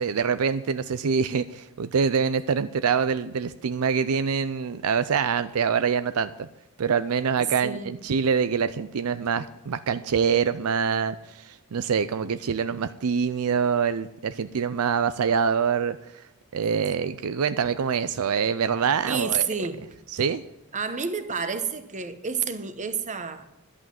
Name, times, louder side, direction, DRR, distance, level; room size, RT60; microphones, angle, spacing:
voice 1, 0.0-6.5 6.8-16.0 16.5-19.5 20.1-20.4, right 6 dB, 75° right, 0.5 m, -25 dB
voice 2, 7.4-7.9 19.0-19.8 20.7-23.4, right 6 dB, 35° right, 1.0 m, -29 dB
11.5 x 8.4 x 7.4 m
head